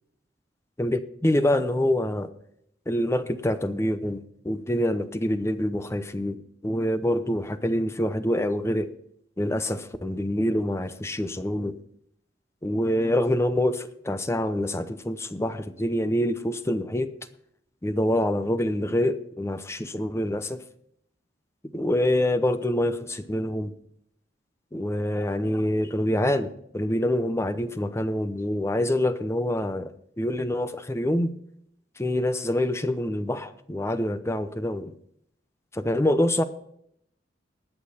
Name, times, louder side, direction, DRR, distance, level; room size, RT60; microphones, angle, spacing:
voice 1, 0.8-2.3 2.9-6.4 6.6-8.9 9.4-11.8 12.6-17.1 17.8-20.6 21.7-23.7 24.7-29.9 30.2-31.3 32.0-34.9 35.7-36.4, left 1 dB, 15° left, 0.6 m, -26 dB
20.0 x 6.9 x 4.2 m
head